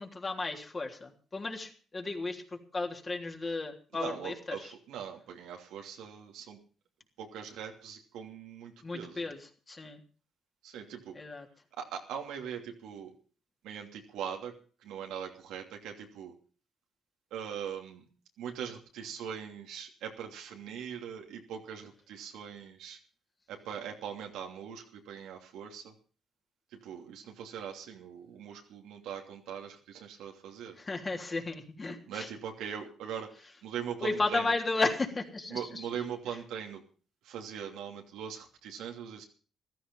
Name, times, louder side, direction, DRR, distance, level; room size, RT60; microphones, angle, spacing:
voice 1, 0.0-4.7 8.8-9.4 9.7-10.0 11.1-11.5 30.8-32.3 34.0-35.8, left 3 dB, 30° left, 2 dB, 3.3 m, -34 dB
voice 2, 3.9-6.6 7.2-9.3 10.6-11.2 11.7-13.1 13.6-14.5 14.8-16.3 17.3-18.1 18.4-23.0 23.5-25.9 26.7-30.8 32.1-34.5 35.5-36.8 37.2-39.2, right 8 dB, 90° right, 3 dB, 2.9 m, -41 dB
15.0 x 13.5 x 5.5 m, 0.40 s
cardioid pair, 90°, 0 cm